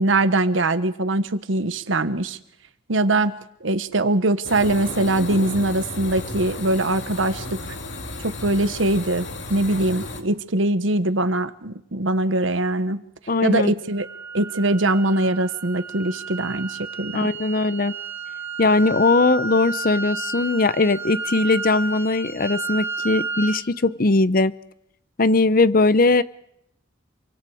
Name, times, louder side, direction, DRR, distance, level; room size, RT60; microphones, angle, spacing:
voice 1, 0.0-2.4 2.9-7.6 8.2-13.0 13.4-14.1 14.3-17.3, right 2 dB, 85° right, 12 dB, 1.2 m, -22 dB
sound 1, 4.4-10.2, left 2 dB, 65° left, 2.3 m, -33 dB
voice 2, 13.3-13.7 17.1-17.9 18.6-24.5 25.2-26.2, left 3 dB, 50° left, 16 dB, 0.7 m, -19 dB
sound 2, 14.0-23.6, right 3 dB, 15° right, 1.7 m, -32 dB
27.0 x 24.5 x 4.9 m, 0.76 s
head